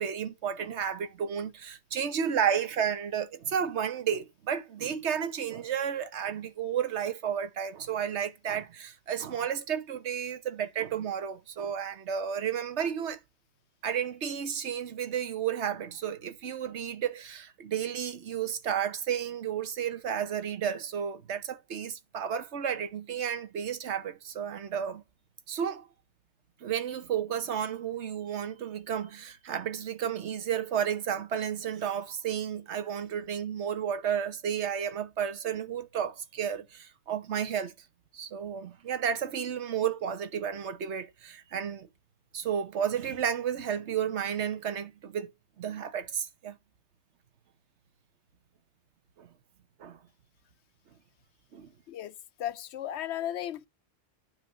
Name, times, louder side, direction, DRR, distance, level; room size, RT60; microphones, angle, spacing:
voice 1, 0.0-13.2 13.8-25.0 25.5-25.9 26.6-37.7 38.1-41.9 42.3-45.3 45.6-46.6 49.2-49.3 49.8-50.0 51.5-51.7, right 8 dB, 85° right, 1.2 m, -32 dB
voice 2, 52.4-53.7, left 11 dB, 80° left, 0.9 m, -35 dB
9.4 x 3.4 x 6.3 m
omnidirectional pair, 1.1 m